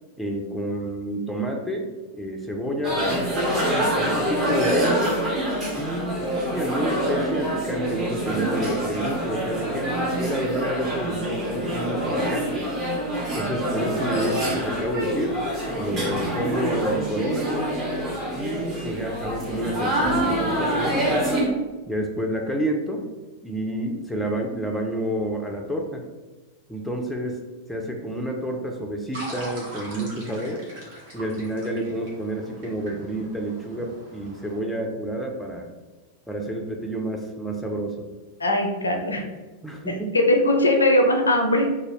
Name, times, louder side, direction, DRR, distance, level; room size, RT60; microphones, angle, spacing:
voice 1, 0.2-1.9 2.1-3.5 4.0-5.2 5.7-12.7 13.3-15.4 15.7-17.5 18.3-21.3 21.9-23.0 23.4-26.0 26.7-27.4 27.7-30.6 31.1-35.7 36.3-38.1 39.6-40.1, right 1 dB, ahead, 1 dB, 0.4 m, -29 dB
sound 1, 2.8-21.5, right 1 dB, 30° right, 0.9 m, -26 dB
sound 2, 29.1-34.6, equal, 55° right, 1.0 m, -41 dB
voice 2, 38.4-39.3 39.9-41.7, left 1 dB, 75° left, 3 dB, 0.4 m, -20 dB
2.7 x 2.3 x 3.0 m, 1.2 s
figure-of-eight pair, 90°, 0 cm